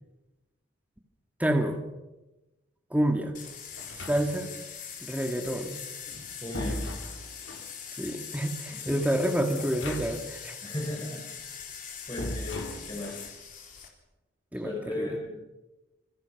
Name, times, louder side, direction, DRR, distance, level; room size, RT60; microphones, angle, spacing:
voice 1, 1.4-1.8 2.9-3.3 4.1-4.5 5.0-5.8 7.9-10.6 14.5-15.1, right 1 dB, 10° right, 3 dB, 1.8 m, -28 dB
sound 1, 3.3-13.9, left 7 dB, 40° left, 3.8 m, -42 dB
sound 2, 3.8-4.6 5.9-7.7 9.6-10.4 10.6-10.7 12.2-13.3, left 1 dB, 85° left, 3.6 m, -38 dB
voice 2, 6.2-6.8 8.7-8.9 10.6-11.5 12.1-13.1 14.6-15.3, left 1 dB, 25° left, -2 dB, 5.2 m, -36 dB
27.0 x 24.0 x 5.9 m, 1.1 s
head